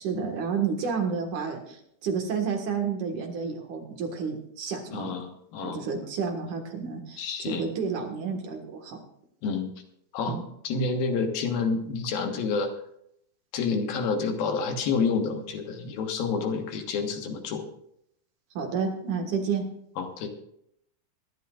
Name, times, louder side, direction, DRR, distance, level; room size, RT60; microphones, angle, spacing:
voice 1, 0.0-5.2 5.6-9.0 10.3-10.4 18.5-19.7, right 5 dB, 60° right, 3 dB, 3.0 m, -30 dB
voice 2, 4.9-5.8 7.2-7.6 9.4-9.7 10.1-10.4 10.6-12.7 13.5-17.6 20.0-20.3, left 4 dB, 85° left, 5 dB, 3.2 m, -29 dB
23.0 x 11.5 x 2.5 m, 0.73 s
omnidirectional pair, 4.1 m